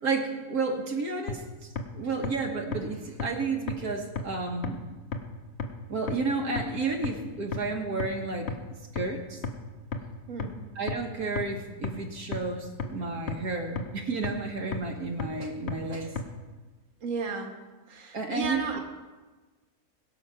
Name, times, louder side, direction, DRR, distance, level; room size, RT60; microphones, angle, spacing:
voice 1, 0.0-4.8 5.9-8.6 8.9-9.4 10.8-16.1 18.1-18.8, right 3 dB, 75° right, 1 dB, 1.9 m, -32 dB
sound 1, 1.3-1.4 1.8-1.9 2.2-2.3 2.7-2.8 3.2-3.3 3.7-3.8 4.2-4.3 4.6-4.7 5.1-5.2 5.6-5.7 6.1-6.2 6.6-6.7 7.0-7.1 7.5-7.6 8.0-8.1 8.5-8.6 9.0-9.1 9.4-9.5 9.9-10.0 10.4-10.5 10.9-11.0 11.4-11.5 11.8-11.9 12.3-12.4 12.8-12.9 13.3-13.4 13.8-13.9 14.2-14.3 14.7-14.8 15.2-15.3 15.7-15.8 16.2-16.3, left 5 dB, 50° left, 1.3 m, -30 dB
voice 2, 17.0-17.5 17.9-18.8, right 4 dB, 55° right, 3 dB, 1.8 m, -33 dB
21.0 x 7.4 x 5.8 m, 1.3 s
omnidirectional pair, 1.6 m